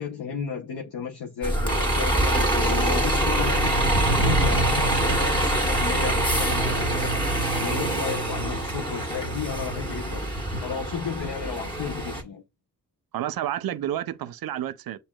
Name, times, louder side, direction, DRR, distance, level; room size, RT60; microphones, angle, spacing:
voice 1, 0.0-10.3 10.6-12.4, left 7 dB, 85° left, 0.9 m, -33 dB
Bus, 1.4-12.2, right 1 dB, 15° left, 1.6 m, -24 dB
voice 2, 13.1-15.0, right 11 dB, 65° right, 0.6 m, -30 dB
7.3 x 2.8 x 2.3 m
cardioid pair, 55°, 38 cm